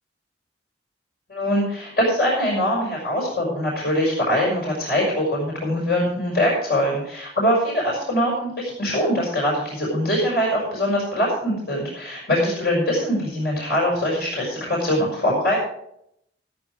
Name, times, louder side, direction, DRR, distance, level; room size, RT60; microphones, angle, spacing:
voice 1, 1.3-15.6, equal, 60° left, -5 dB, 5.6 m, -22 dB
14.5 x 8.9 x 4.8 m, 0.75 s
head